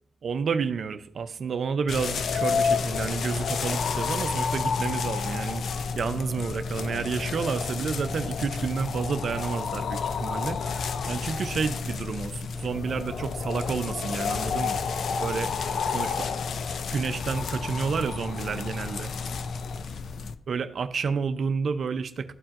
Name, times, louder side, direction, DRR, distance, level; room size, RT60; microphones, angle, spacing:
voice 1, 0.2-5.6 5.9-10.6 11.0-14.8 15.2-15.5 15.9-16.3 16.9-19.1 20.5-22.3, right 5 dB, 55° right, 10 dB, 0.6 m, -30 dB
sound 1, 1.9-20.3, left 5 dB, 65° left, 0.4 m, -30 dB
13.0 x 4.4 x 2.5 m, 0.63 s
cardioid pair, 95°, 0 cm